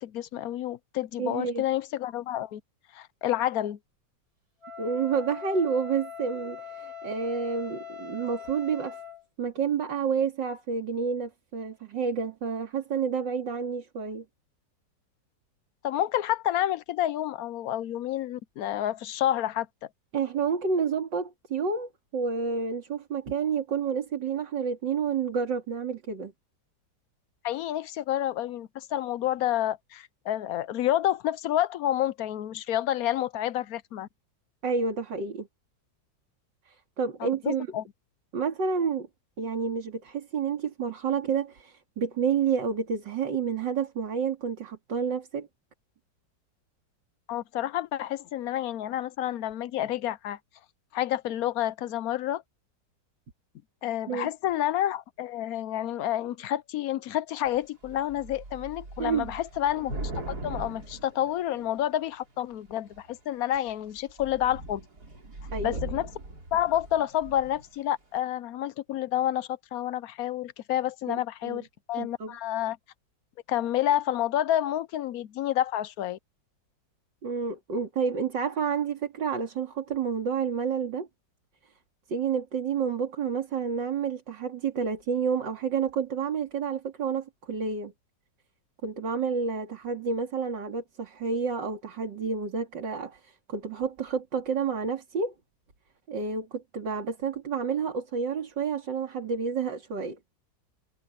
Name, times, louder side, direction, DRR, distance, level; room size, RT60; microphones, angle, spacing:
voice 1, 0.0-2.6 2.9-3.8 15.8-19.7 27.4-34.1 37.4-37.8 47.3-50.4 50.9-52.4 53.8-64.8 65.6-66.1 66.5-72.8 73.5-76.2, left 12 dB, 65° left, 0.9 m, -29 dB
voice 2, 1.2-1.6 4.8-9.0 9.4-14.2 20.1-26.3 34.6-35.5 36.7-37.7 38.3-39.1 39.4-45.5 54.1-54.3 59.0-59.3 65.5-65.8 71.1-71.6 72.0-72.3 77.2-81.1 82.1-87.9 88.8-95.3 96.1-100.2, right 6 dB, 70° right, 3.3 m, -29 dB
Wind instrument woodwind instrument, 4.6-9.2, left 7 dB, 85° right, 5.9 m, -41 dB
Thunder / Rain, 57.4-57.6 57.8-62.0 62.7-63.1 63.5-63.7 64.0-67.7, right 2 dB, 55° right, 4.9 m, -40 dB
omnidirectional pair, 2.0 m